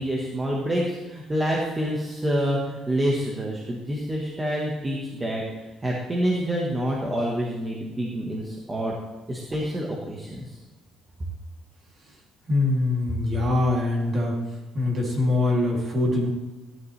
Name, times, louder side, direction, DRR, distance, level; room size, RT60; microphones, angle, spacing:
voice 1, 0.0-5.4 5.8-9.0 9.3-10.6, equal, 15° right, -2 dB, 1.3 m, -27 dB
voice 2, 12.5-14.4 14.7-16.3, left 2 dB, 30° right, -1 dB, 2.7 m, -23 dB
15.0 x 11.0 x 3.3 m, 1.1 s
cardioid pair, 180°, 0 cm